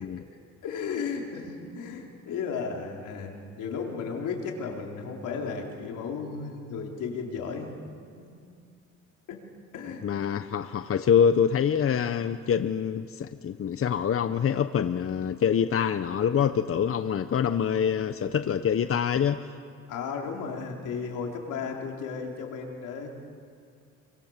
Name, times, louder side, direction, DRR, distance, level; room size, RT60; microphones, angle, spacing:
voice 1, 0.6-3.3 3.6-7.8 8.2-8.3 9.3-9.4 9.7-10.0 19.9-23.1, left 5 dB, 85° left, 0 dB, 4.3 m, -34 dB
voice 2, 10.0-19.4, left 8 dB, 45° left, 11 dB, 0.9 m, -25 dB
28.0 x 24.5 x 7.5 m, 2.3 s
cardioid pair, 90°, 30 cm